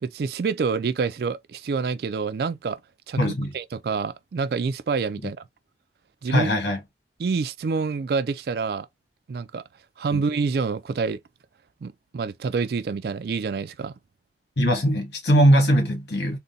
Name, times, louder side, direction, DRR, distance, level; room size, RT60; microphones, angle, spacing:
voice 1, 0.0-2.8 3.1-5.4 6.2-6.5 7.2-8.9 9.3-9.6 10.0-11.2 11.8-13.9, right 5 dB, 60° right, 0.3 m, -27 dB
voice 2, 3.2-3.5 6.3-6.8 10.1-10.2 14.6-16.4, equal, 70° left, 1.7 m, -20 dB
3.9 x 2.1 x 3.8 m
head